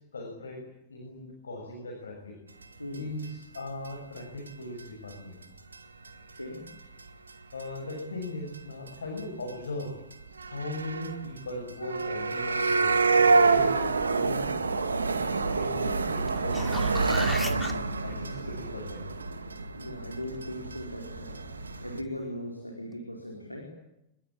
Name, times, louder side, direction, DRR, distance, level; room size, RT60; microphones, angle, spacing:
voice 1, 0.1-0.6 0.9-2.3 2.9-5.3 7.5-9.9 10.5-12.9 13.3-13.7 14.1-14.5 14.8-15.0 15.4-17.2 18.0-19.0, left 2 dB, 70° left, 2 dB, 6.8 m, -39 dB
sound 1, 2.9-3.0 3.2-3.3 3.5-3.6 3.9-4.0 4.2-4.3 4.5-4.6 4.8-5.1 5.4-5.5 5.7-5.8 6.1-6.3 6.7-6.8 7.0-7.6 7.9-8.2 8.5-8.6 8.9-9.0 9.2-9.3 9.5-9.6 9.8-9.9 10.1-22.0, right 4 dB, 75° right, 2.2 m, -27 dB
voice 2, 6.0-6.7 19.7-23.6, left 1 dB, 90° left, 1 dB, 4.6 m, -39 dB
sound 2, 16.3-17.7 22.5-22.6, left 2 dB, 5° left, 2.8 m, -36 dB
27.0 x 22.0 x 8.8 m, 0.84 s
figure-of-eight pair, 90°, 0 cm